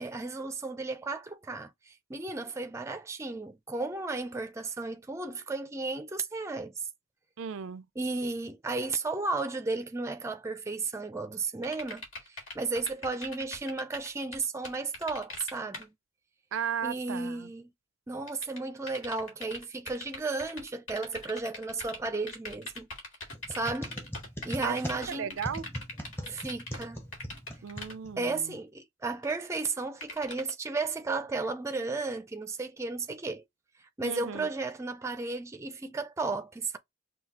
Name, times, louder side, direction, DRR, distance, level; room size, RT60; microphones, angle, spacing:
voice 1, 0.0-1.7 2.1-6.7 8.0-12.0 12.5-15.9 16.8-17.7 18.1-22.9 23.5-23.9 24.4-25.4 26.3-27.0 28.2-33.4 34.0-36.8, right 3 dB, 15° right, 0.4 m, -34 dB
voice 2, 7.4-7.8 16.5-17.5 24.6-24.8 25.1-25.7 27.6-28.5 34.0-34.5, right 7 dB, 75° right, 0.4 m, -35 dB
sound 1, 11.6-15.8 18.3-26.9 27.1-27.9 29.2-29.3 30.0-30.5, left 2 dB, 80° left, 1.9 m, -41 dB
sound 2, 23.3-28.4, equal, 10° left, 0.7 m, -41 dB
5.7 x 2.3 x 2.8 m
head